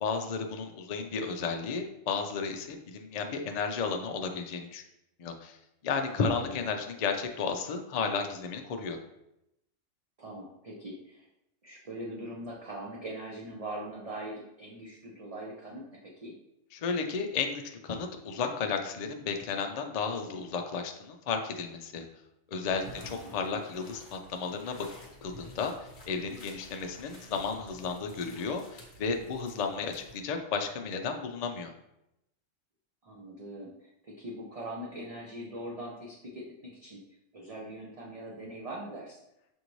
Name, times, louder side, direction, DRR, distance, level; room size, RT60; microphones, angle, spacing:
voice 1, 0.0-4.8 5.2-5.6 5.8-9.0 16.7-22.0 22.5-24.9 25.2-31.7, left 5 dB, 75° left, 5 dB, 0.3 m, -33 dB
voice 2, 6.1-6.7 10.2-11.3 11.6-16.4 23.0-23.3 33.0-37.0 37.3-39.2, right 1 dB, 40° right, -3 dB, 0.5 m, -42 dB
sound 1, 22.6-30.2, left 1 dB, 45° left, 1.0 m, -51 dB
6.2 x 2.6 x 3.0 m, 0.85 s
omnidirectional pair, 1.3 m